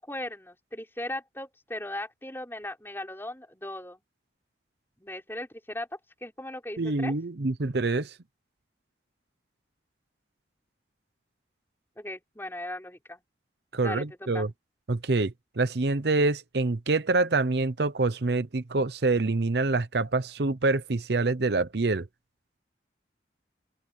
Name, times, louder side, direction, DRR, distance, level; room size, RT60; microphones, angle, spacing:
voice 1, 0.1-4.0 5.0-5.9 6.2-7.1 12.0-13.2 13.8-14.1 14.3-14.5, left 1 dB, 15° left, 4.8 m, -37 dB
voice 2, 6.8-8.1 13.7-14.5 14.9-22.1, right 3 dB, 65° right, 0.8 m, -26 dB
open air
head